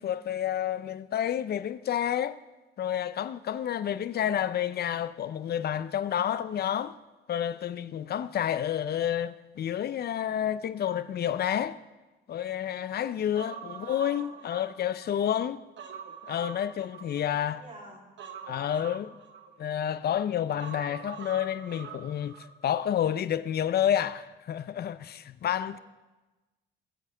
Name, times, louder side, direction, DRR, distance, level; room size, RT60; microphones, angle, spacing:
voice 1, 0.0-2.4 2.8-7.0 7.3-11.8 12.3-15.6 16.2-17.6 18.5-19.2 19.6-22.4 22.6-25.8, left 10 dB, 55° left, 0.6 m, -29 dB
Human voice, 13.3-15.1 15.5-17.5 18.2-19.9 20.6-22.5 22.8-22.9, right 7 dB, 65° right, 1.2 m, -44 dB
voice 2, 13.5-14.3 17.0-18.0 25.7-25.8, right 2 dB, 40° right, 3.3 m, -49 dB
20.5 x 8.3 x 3.4 m
cardioid pair, 90°, 20 cm